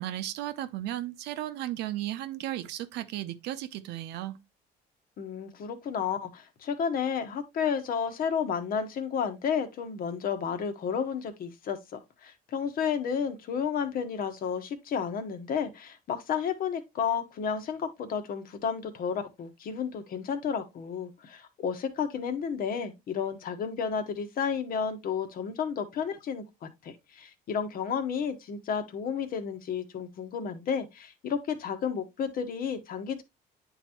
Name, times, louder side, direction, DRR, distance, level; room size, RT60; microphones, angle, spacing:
voice 1, 0.0-4.4, right 13 dB, 85° right, 0.7 m, -35 dB
voice 2, 5.2-33.2, left 7 dB, 60° left, 1.3 m, -32 dB
9.2 x 4.0 x 3.0 m
cardioid pair, 110°, 17 cm